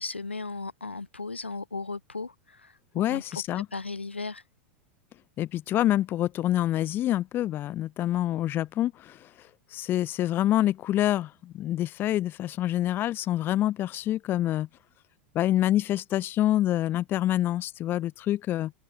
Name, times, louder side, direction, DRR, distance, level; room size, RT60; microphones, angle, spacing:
voice 1, 0.0-3.4 3.7-4.4, left 3 dB, 90° left, 2.1 m, -36 dB
voice 2, 2.9-3.7 5.4-14.7 15.3-18.7, left 13 dB, 35° left, 1.2 m, -27 dB
open air
figure-of-eight pair, 90°, 6 cm